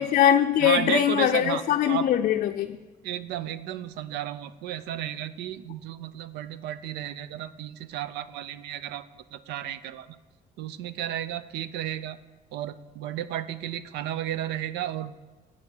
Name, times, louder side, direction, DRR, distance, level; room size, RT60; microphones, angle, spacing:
voice 1, 0.0-2.8, left 10 dB, 50° left, 6 dB, 0.5 m, -22 dB
voice 2, 0.6-2.1 3.0-9.1 9.3-10.1 10.6-12.2 12.5-15.1, right 11 dB, 85° right, 15 dB, 0.6 m, -33 dB
8.7 x 5.9 x 8.1 m, 1.3 s
cardioid pair, 110°, 17 cm